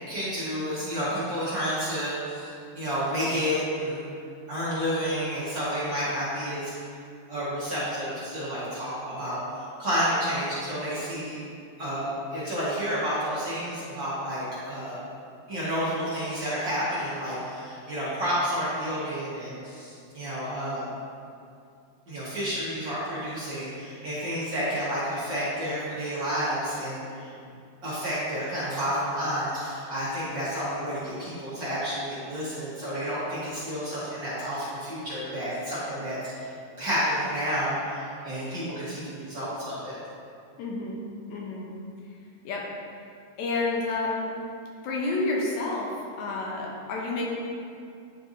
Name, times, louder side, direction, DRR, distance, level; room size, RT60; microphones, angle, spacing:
voice 1, 0.1-4.0 4.5-6.7 7.3-11.4 11.8-15.0 15.5-20.9 22.1-27.3 27.8-36.5 36.8-40.0, equal, 50° right, -10 dB, 1.6 m, -30 dB
voice 2, 40.6-41.0 41.3-41.7 42.4-42.7 43.4-44.3 44.8-47.2, left 3 dB, 75° left, -2 dB, 2.0 m, -29 dB
10.0 x 4.5 x 2.6 m, 2.4 s
omnidirectional pair, 3.5 m